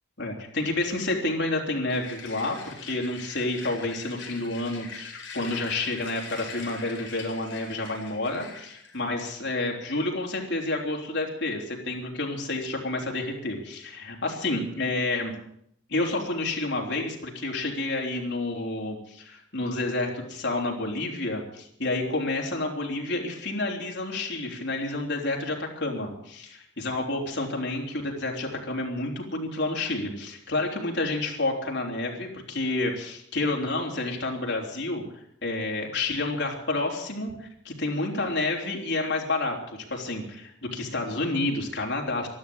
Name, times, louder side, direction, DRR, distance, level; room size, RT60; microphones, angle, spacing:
voice 1, 0.2-15.3 15.9-39.6 39.9-42.3, left 2 dB, 65° left, 0 dB, 3.9 m, -29 dB
sound 1, 1.9-9.0, left 5 dB, 80° left, 4.6 m, -43 dB
12.5 x 12.5 x 8.9 m, 0.72 s
head